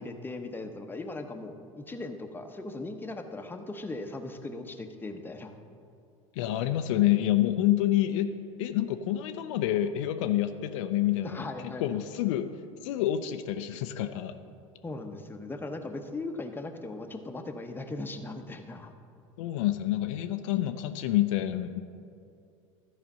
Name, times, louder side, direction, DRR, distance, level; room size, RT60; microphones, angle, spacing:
voice 1, 0.0-5.5 11.2-11.8 14.8-18.9, left 2 dB, 10° left, 5 dB, 0.8 m, -38 dB
voice 2, 6.4-8.3 8.6-12.5 12.8-14.3 19.4-21.8, left 13 dB, 65° left, 8 dB, 0.5 m, -28 dB
13.0 x 5.0 x 5.5 m, 2.4 s
hypercardioid pair, 75°, 17 cm